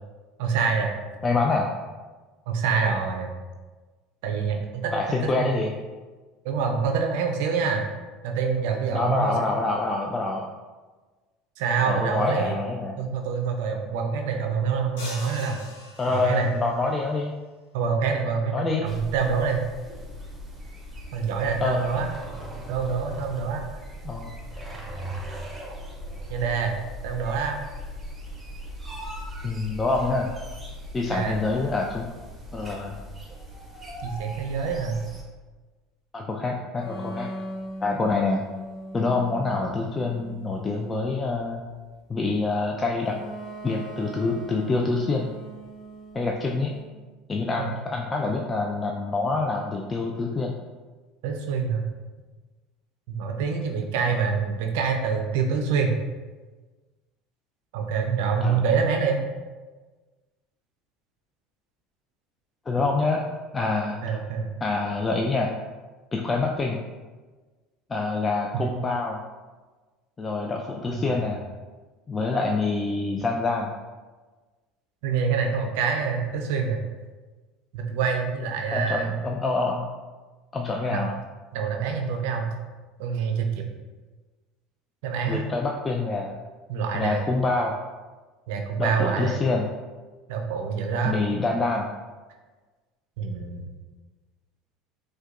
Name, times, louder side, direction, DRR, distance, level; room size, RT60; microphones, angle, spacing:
voice 1, 0.4-0.9 2.5-3.3 4.2-4.9 5.4-5.5 6.4-7.8 8.2-9.3 11.6-12.6 13.0-15.6 16.1-16.5 17.7-19.6 21.1-22.1 22.7-23.6 26.3-26.7 27.0-27.6 31.1-31.4 34.0-35.0 47.6-47.7 51.2-51.8 53.1-55.9 57.7-59.2 64.0-64.5 70.9-71.2 75.0-76.8 77.7-79.2 80.9-81.0 81.5-82.5 83.0-83.6 85.0-85.4 86.7-87.3 88.5-89.4 90.3-91.2 93.2-93.7, right 5 dB, 75° right, 3 dB, 0.4 m, -26 dB
voice 2, 1.2-1.7 4.9-5.7 8.9-10.4 11.9-13.0 16.0-17.3 18.5-18.9 21.6-21.8 24.0-24.3 29.4-30.3 30.9-32.1 32.5-32.9 36.1-37.3 37.8-38.5 38.9-41.6 42.1-43.2 43.6-45.3 46.1-46.7 47.3-50.5 58.4-58.7 62.7-63.2 63.5-64.2 64.6-65.5 66.1-66.8 67.9-69.2 70.2-71.4 72.1-73.7 78.7-79.9 80.5-81.1 85.3-86.3 86.9-87.8 88.8-89.7 91.0-91.9, left 3 dB, 25° left, 0 dB, 0.3 m, -26 dB
sound 1, 15.0-16.8, left 1 dB, 80° left, 0.8 m, -41 dB
sound 2, 18.8-35.2, equal, 15° right, 0.9 m, -39 dB
sound 3, 36.8-40.8 43.1-46.8, right 1 dB, 50° left, 1.2 m, -39 dB
4.4 x 2.2 x 2.4 m, 1.3 s
hypercardioid pair, 80°, 0 cm